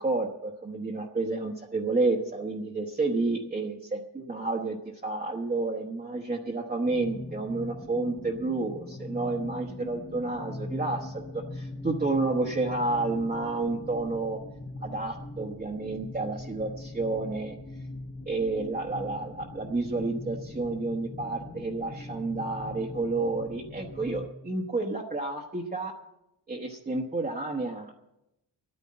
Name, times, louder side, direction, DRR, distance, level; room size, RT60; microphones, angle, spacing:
voice 1, 0.0-14.4 14.8-17.6 18.3-25.9 26.5-28.0, right 3 dB, 20° right, -1 dB, 1.1 m, -30 dB
sound 1, 6.9-24.3, left 2 dB, 20° left, 0.9 m, -41 dB
11.5 x 9.5 x 8.6 m, 0.88 s
wide cardioid pair, 135°, 42 cm